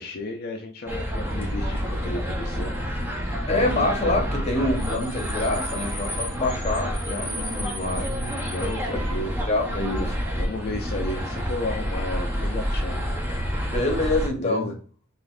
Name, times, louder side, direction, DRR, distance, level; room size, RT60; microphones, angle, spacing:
voice 1, 0.0-2.7 8.4-9.3 9.7-13.0 14.3-14.7, left 2 dB, 45° left, 2 dB, 0.4 m, -33 dB
sound 1, 0.9-14.3, equal, 10° right, 0.5 m, -28 dB
voice 2, 3.5-8.5 8.9-9.0 9.5-10.1 13.7-14.7, left 2 dB, 30° left, 1 dB, 0.8 m, -26 dB
3.3 x 2.5 x 2.3 m, 0.41 s
head